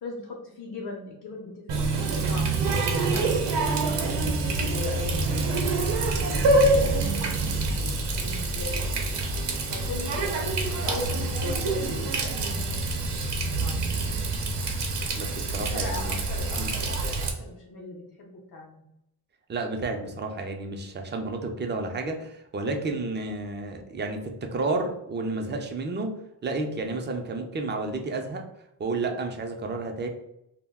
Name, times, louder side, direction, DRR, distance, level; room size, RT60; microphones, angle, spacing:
voice 1, 0.0-2.5 3.0-8.9 9.7-13.3 13.6-13.8 15.5-18.8, left 3 dB, 60° left, -1 dB, 0.6 m, -40 dB
Water tap faucet, 1.7-17.3, right 2 dB, 85° right, 0.6 m, -26 dB
voice 2, 15.1-16.2 16.6-16.7 19.5-26.1 26.4-28.4 28.8-30.1, right 3 dB, 30° right, 4 dB, 0.4 m, -31 dB
2.2 x 2.1 x 3.4 m, 0.80 s
wide cardioid pair, 110°, 40 cm